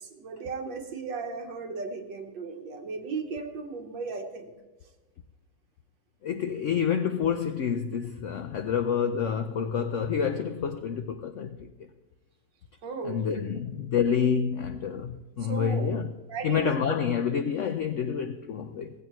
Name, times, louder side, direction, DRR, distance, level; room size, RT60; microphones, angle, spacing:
voice 1, 0.0-4.5 12.8-13.4 15.4-15.9 16.3-16.8, right 4 dB, 75° right, 1.9 m, -36 dB
voice 2, 6.2-11.7 13.0-16.1 16.4-18.9, left 7 dB, 75° left, 0.6 m, -28 dB
17.5 x 15.5 x 3.1 m
omnidirectional pair, 2.0 m